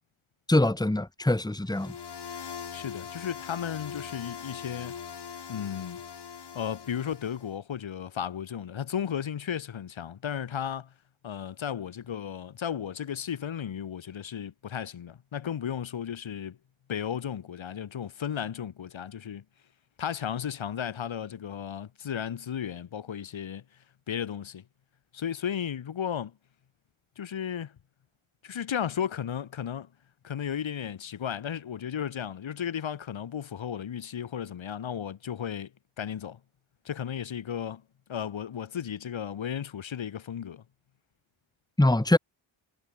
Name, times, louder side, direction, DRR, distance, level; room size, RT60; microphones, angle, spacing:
voice 1, 0.5-2.0 41.8-42.2, left 1 dB, 10° left, 3.0 m, -23 dB
sound 1, 1.7-7.5, left 7 dB, 55° left, 6.8 m, -41 dB
voice 2, 2.7-4.9 5.5-6.0 6.5-10.9 11.2-16.6 16.9-19.4 20.0-23.6 24.1-24.6 25.1-26.3 27.2-27.8 28.4-29.9 30.2-35.7 36.0-36.4 36.8-37.8 38.1-40.6, left 8 dB, 70° left, 6.2 m, -34 dB
wide cardioid pair, 125°, 48 cm